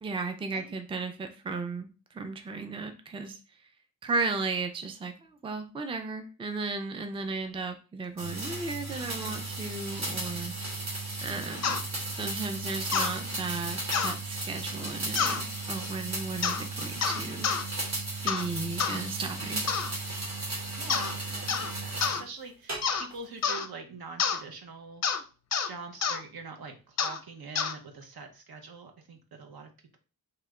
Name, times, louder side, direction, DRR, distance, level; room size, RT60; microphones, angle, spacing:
voice 1, 0.0-3.4 4.0-10.8 11.2-11.8 12.1-17.9 18.2-19.8, right 3 dB, 15° right, 6 dB, 0.4 m, -35 dB
sound 1, 8.2-22.2 22.7-23.2, right 2 dB, 45° right, 1.1 m, -35 dB
sound 2, 11.6-11.8 12.9-13.1 13.9-14.2 15.1-15.4 16.4-16.6 17.0-17.6 18.3-18.5 18.8-19.0 19.7-19.9 20.9-21.1 21.5-21.7 22.0-22.2 22.8-23.1 23.4-23.7 24.2-24.4 25.0-25.2 25.5-25.7 26.0-26.2 27.0-27.2 27.5-27.7, left 6 dB, 45° left, 0.4 m, -28 dB
voice 2, 20.8-25.0 25.6-30.0, right 4 dB, 75° right, 4 dB, 0.9 m, -44 dB
3.2 x 2.9 x 3.6 m, 0.35 s
wide cardioid pair, 155°, 37 cm